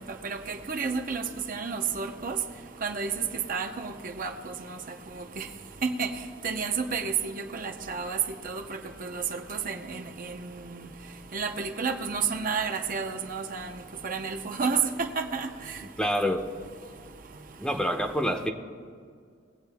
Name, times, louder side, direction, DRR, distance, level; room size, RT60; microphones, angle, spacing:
voice 1, 0.2-2.4 2.8-4.8 5.1-5.5 6.0-6.1 6.4-8.2 8.4-8.6 9.0-10.8 11.3-13.7 14.0-15.5, right 5 dB, 45° right, 5 dB, 0.7 m, -31 dB
voice 2, 16.0-16.5 17.6-18.5, equal, 5° left, 4 dB, 0.7 m, -27 dB
20.5 x 8.2 x 3.5 m, 2.1 s
head